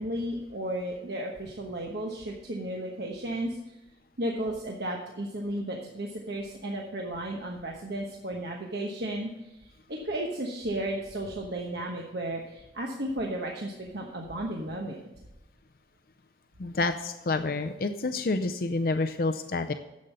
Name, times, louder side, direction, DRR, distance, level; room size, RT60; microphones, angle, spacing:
voice 1, 0.0-3.8 4.2-9.6 9.9-15.0, right 1 dB, 60° right, 0 dB, 1.2 m, -34 dB
voice 2, 16.6-19.7, left 3 dB, 50° left, 8 dB, 0.5 m, -28 dB
10.5 x 7.7 x 5.5 m, 1.0 s
head